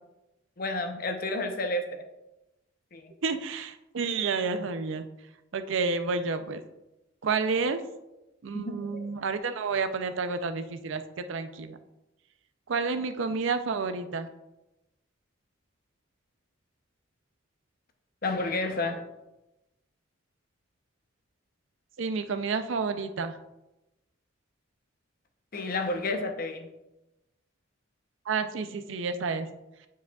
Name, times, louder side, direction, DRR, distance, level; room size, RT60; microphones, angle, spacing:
voice 1, 0.6-2.0 2.9-3.1 7.6-7.8 8.5-9.1 18.2-19.1 25.5-26.7, left 2 dB, 45° left, 6 dB, 0.6 m, -31 dB
voice 2, 3.2-5.1 5.5-6.6 7.2-7.8 8.4-11.8 12.7-14.3 22.0-23.3 28.3-29.5, right 4 dB, 65° right, 9 dB, 0.4 m, -30 dB
9.2 x 4.8 x 2.3 m, 0.95 s
head